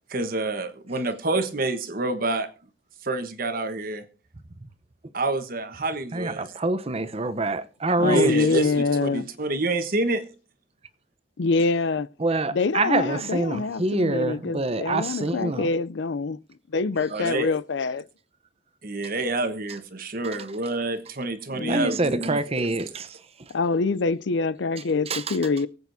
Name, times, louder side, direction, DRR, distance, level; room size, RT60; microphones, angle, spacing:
voice 1, 0.1-2.5 3.0-4.1 5.1-6.5 8.0-10.2 17.1-17.5 18.8-22.7, right 2 dB, 50° right, 1.2 m, -28 dB
voice 2, 6.1-8.4 12.2-15.7 21.6-23.5 25.1-25.4, right 2 dB, 35° right, 0.8 m, -26 dB
voice 3, 8.0-9.3 11.4-12.1 12.5-16.4 16.7-18.0 21.5-21.9 23.5-25.7, left 4 dB, 75° left, 0.5 m, -25 dB
23.5 x 8.3 x 2.7 m
head